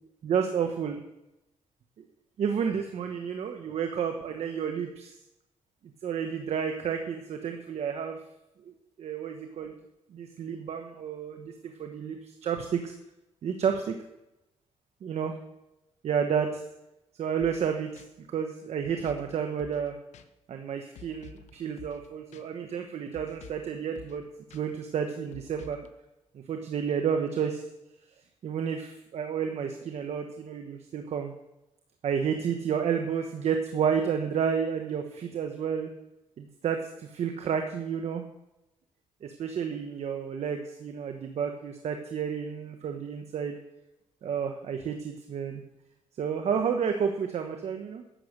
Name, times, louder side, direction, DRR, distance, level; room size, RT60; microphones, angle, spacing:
voice 1, 0.2-1.0 2.0-2.1 2.4-5.1 6.0-8.2 9.0-9.7 10.1-12.9 13.4-13.9 15.0-15.3 16.0-16.6 17.2-18.0 18.3-19.9 20.5-24.2 24.5-25.8 26.3-27.6 28.4-31.3 32.0-35.9 36.4-38.2 39.2-43.6 44.2-45.6 46.2-48.0, right 7 dB, 65° right, 5 dB, 1.0 m, -31 dB
sound 1, 17.4-17.7 18.0-18.1 19.0-19.3 19.6-19.9 20.1-20.3 20.9-21.5 21.8-22.1 22.3-22.4 23.1-23.7 23.9-24.2 24.5-24.6 25.3-25.9, left 8 dB, 80° left, 0.8 m, -49 dB
11.0 x 7.7 x 6.6 m, 0.92 s
cardioid pair, 95°, 12 cm